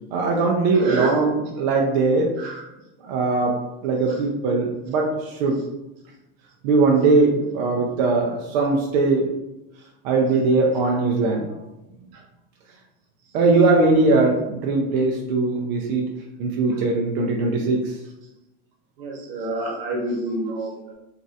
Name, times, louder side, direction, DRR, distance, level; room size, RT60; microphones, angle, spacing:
voice 1, 0.1-2.3 3.0-3.5 3.8-5.6 6.6-9.3 10.0-11.5 13.3-16.1 16.4-18.0, right 3 dB, 50° right, 0 dB, 0.4 m, -20 dB
voice 2, 0.7-1.2 2.4-2.6 4.1-4.2 12.1-12.2 16.7-16.8 19.0-20.9, right 2 dB, 75° right, 0 dB, 1.0 m, -28 dB
3.1 x 2.5 x 2.6 m, 0.95 s
supercardioid pair, 175°, 30 cm